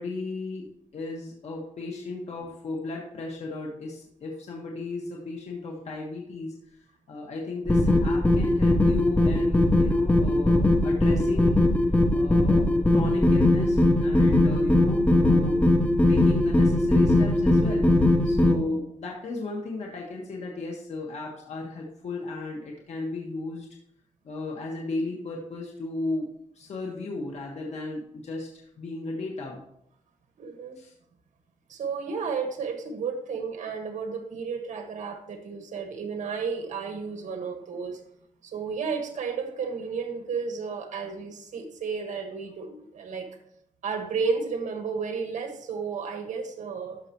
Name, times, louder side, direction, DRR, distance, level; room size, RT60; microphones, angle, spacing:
voice 1, 0.0-6.5 7.1-11.6 12.1-15.6 16.0-23.7 24.2-26.3 26.5-29.6 30.8-30.9, left 3 dB, 55° left, -1 dB, 1.5 m, -35 dB
sound 1, 7.7-18.5, left 1 dB, 10° left, 0.9 m, -20 dB
voice 2, 30.4-30.8 31.7-38.0 38.4-43.4 43.8-47.0, right 5 dB, 70° right, 5 dB, 1.5 m, -32 dB
12.5 x 5.9 x 3.0 m, 0.74 s
wide cardioid pair, 125°, 13 cm